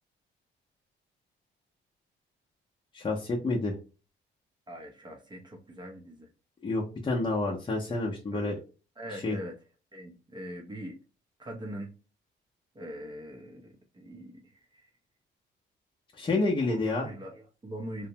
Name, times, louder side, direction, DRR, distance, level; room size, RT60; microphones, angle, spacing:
voice 1, 2.9-3.8 6.6-8.6 9.1-9.4 16.1-17.1, left 2 dB, 25° left, -2 dB, 0.6 m, -29 dB
voice 2, 4.7-6.3 8.3-8.5 9.0-9.6 9.9-11.0 11.4-11.9 12.7-14.9 16.7-18.1, equal, 20° right, 1 dB, 0.6 m, -42 dB
2.6 x 2.1 x 2.7 m, 0.33 s
cardioid pair, 90°, 20 cm